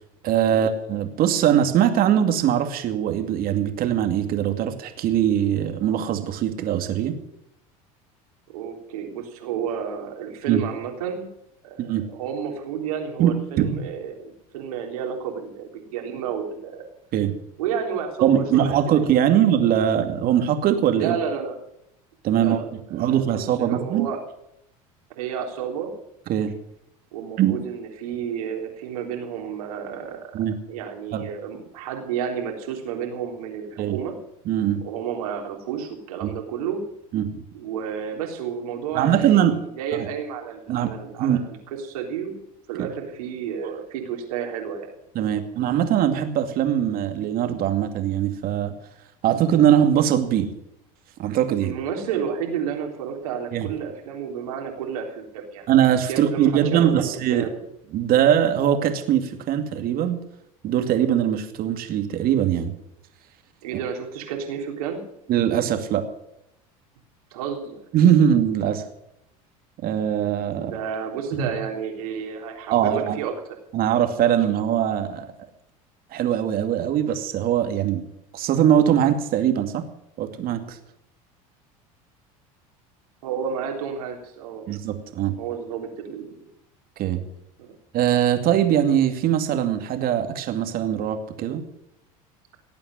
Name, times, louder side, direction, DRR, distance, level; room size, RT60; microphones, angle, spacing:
voice 1, 0.2-7.2 10.5-10.6 11.8-12.0 13.2-13.8 17.1-17.4 18.2-21.2 22.2-22.6 22.9-24.1 26.3-26.5 27.4-27.5 30.3-30.5 31.1-31.3 33.8-34.0 34.5-34.8 36.2-36.3 37.1-37.4 38.9-39.6 39.9-40.1 40.7-40.9 41.2-41.4 42.8-42.9 45.1-48.7 49.2-50.5 51.2-51.7 53.5-53.7 55.7-57.5 57.9-60.2 60.6-62.7 65.3-66.1 67.9-68.8 69.8-70.7 71.3-71.5 72.7-73.2 73.7-75.3 76.1-78.0 78.3-79.8 80.2-80.8 84.7-85.4 87.0-87.2 87.9-91.6, right 10 dB, 55° right, 7 dB, 2.4 m, -21 dB
voice 2, 8.5-11.3 11.6-16.9 17.6-19.0 19.3-19.4 21.0-21.6 22.3-22.6 22.9-24.2 25.2-25.9 27.1-30.3 30.7-34.1 34.8-36.8 37.5-41.6 41.8-42.4 42.7-44.9 51.6-55.7 56.1-57.5 63.6-65.0 67.3-67.8 70.5-73.3 83.2-84.7 85.4-86.5 87.6-87.8, right 7 dB, 80° right, 2 dB, 3.6 m, -31 dB
18.5 x 8.7 x 7.7 m, 0.80 s
hypercardioid pair, 85°, 18 cm